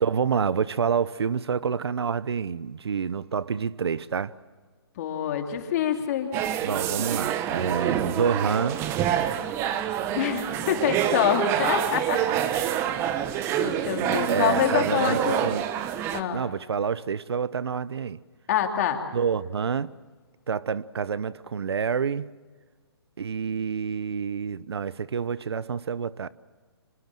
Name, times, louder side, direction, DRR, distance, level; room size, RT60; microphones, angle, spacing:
voice 1, 0.0-4.3 6.6-8.8 14.0-15.6 16.3-18.2 19.1-19.9 20.5-22.3 23.2-26.3, right 6 dB, 75° right, 0.9 m, -28 dB
voice 2, 5.0-6.3 10.1-12.9 13.6-15.5 16.1-16.4 18.5-19.0, left 9 dB, 40° left, 3.1 m, -26 dB
sound 1, 6.3-16.2, right 10 dB, 20° right, 1.2 m, -27 dB
26.5 x 23.0 x 7.7 m
hypercardioid pair, 150°, 14 cm